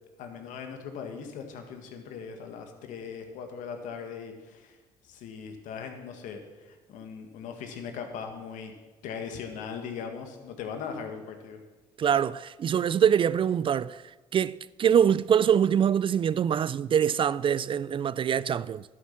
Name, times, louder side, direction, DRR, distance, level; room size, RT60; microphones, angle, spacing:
voice 1, 0.2-4.8 5.0-8.7 9.0-11.6, left 6 dB, 75° left, 1.8 m, -39 dB
voice 2, 12.0-14.0 14.3-18.8, right 8 dB, 40° right, 0.4 m, -24 dB
11.5 x 9.6 x 5.9 m
supercardioid pair, 70°, 13 cm